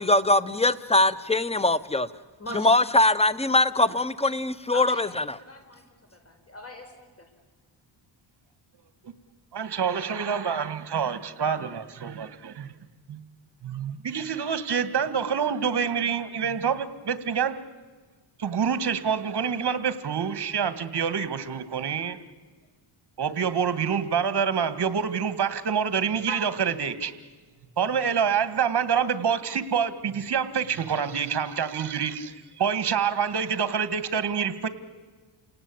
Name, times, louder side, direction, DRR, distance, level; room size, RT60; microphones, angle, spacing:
voice 1, 0.0-2.1 2.5-5.2, left 2 dB, 10° left, 16 dB, 0.9 m, -22 dB
voice 2, 2.4-2.8 4.7-5.0 5.4-7.3, left 1 dB, 30° left, 6 dB, 5.0 m, -40 dB
voice 3, 9.5-12.7 13.1-13.2 13.6-17.6 18.4-22.2 23.2-27.1 27.8-34.7, right 7 dB, 55° right, 13 dB, 1.9 m, -27 dB
29.0 x 18.0 x 8.6 m, 1.4 s
cardioid pair, 90°, 49 cm